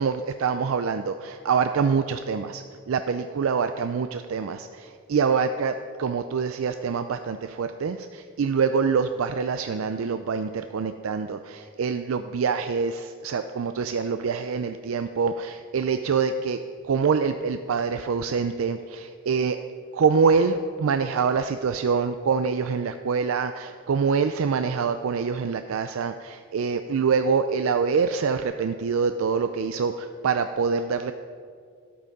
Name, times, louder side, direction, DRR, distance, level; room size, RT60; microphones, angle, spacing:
voice 1, 0.0-16.6 16.8-19.6 19.9-31.1, right 5 dB, 80° right, 9 dB, 0.4 m, -25 dB
11.5 x 8.6 x 5.3 m, 2.2 s
head